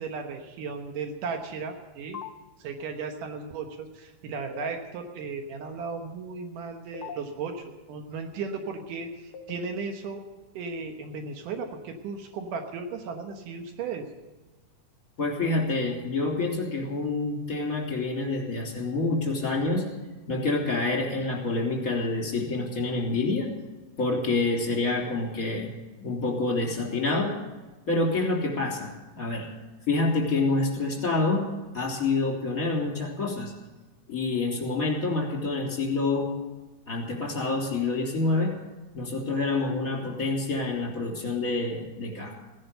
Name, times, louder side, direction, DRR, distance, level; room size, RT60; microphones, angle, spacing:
voice 1, 0.0-2.2 2.6-10.2 10.5-14.1, right 4 dB, 80° right, 5 dB, 2.7 m, -35 dB
sound 1, 2.1-2.3 4.5-4.7 6.9-7.2 9.3-9.7, left 7 dB, 65° left, 1.3 m, -38 dB
voice 2, 15.2-19.9 20.3-23.5 24.0-25.7 26.0-27.3 27.9-28.9 29.1-29.5 29.9-31.5 31.7-33.5 34.1-36.3 36.9-38.5 38.9-42.3, left 3 dB, 25° left, -1 dB, 3.6 m, -27 dB
17.0 x 11.0 x 6.8 m, 1.2 s
omnidirectional pair, 3.7 m